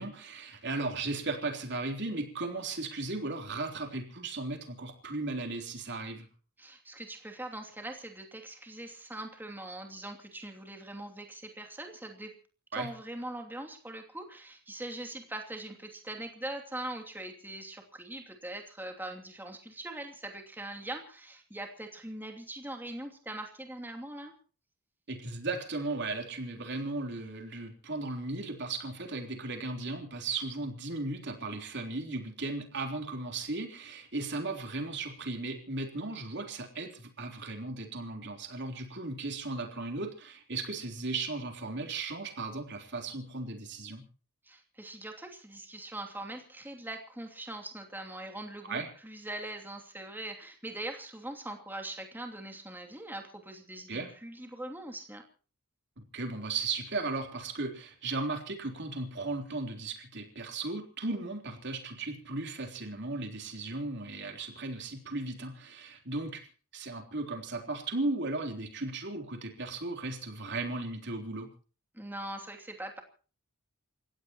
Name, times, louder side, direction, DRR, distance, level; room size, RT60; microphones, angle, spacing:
voice 1, 0.0-6.3 12.7-12.9 25.1-44.0 48.6-48.9 53.9-54.1 56.1-66.4 66.7-71.5, right 3 dB, 55° right, 4 dB, 3.7 m, -36 dB
voice 2, 6.6-12.3 12.7-24.3 44.4-55.2 71.9-73.0, right 1 dB, 10° right, 3 dB, 2.8 m, -42 dB
29.0 x 16.0 x 3.0 m, 0.39 s
head